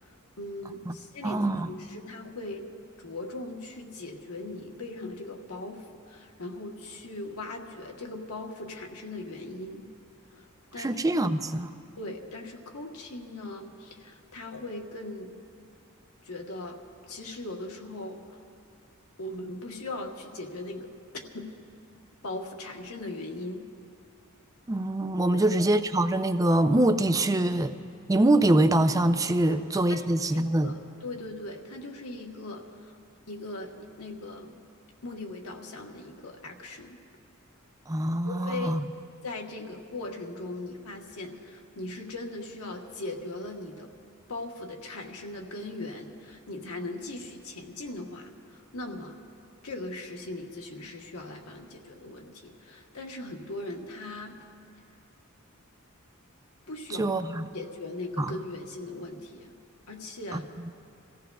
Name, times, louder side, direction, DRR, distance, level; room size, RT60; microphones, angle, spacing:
voice 1, 0.0-1.4 1.7-2.7 3.0-9.8 10.3-11.3 12.0-15.3 16.2-16.8 17.1-18.4 19.2-21.5 22.2-23.6 25.3-25.6 29.4-29.6 29.9-30.0 30.3-32.9 33.3-34.6 35.0-37.0 38.2-38.7 39.2-43.9 44.3-49.2 49.6-54.4 56.7-57.1 57.5-59.5 59.9-60.5, left 2 dB, 90° left, 1 dB, 1.2 m, -39 dB
voice 2, 1.2-1.7 10.8-11.7 24.7-27.7 28.1-30.7 37.9-38.8 57.0-57.5 58.2-58.4 60.3-60.4, right 1 dB, 15° right, 9 dB, 0.4 m, -24 dB
27.5 x 15.0 x 2.3 m, 2.4 s
head